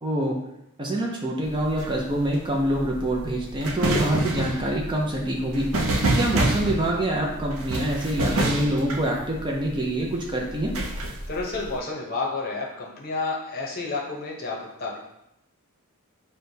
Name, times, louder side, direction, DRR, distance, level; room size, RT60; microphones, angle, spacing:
voice 1, 0.0-0.4 0.8-5.6 6.1-10.7, right 1 dB, 20° right, -1 dB, 0.4 m, -26 dB
sound 1, 1.4-9.8 10.5-11.7, right 2 dB, 70° right, 0.5 m, -27 dB
voice 2, 11.3-15.0, left 3 dB, 40° left, -1 dB, 0.7 m, -30 dB
6.2 x 2.2 x 2.7 m, 0.84 s
head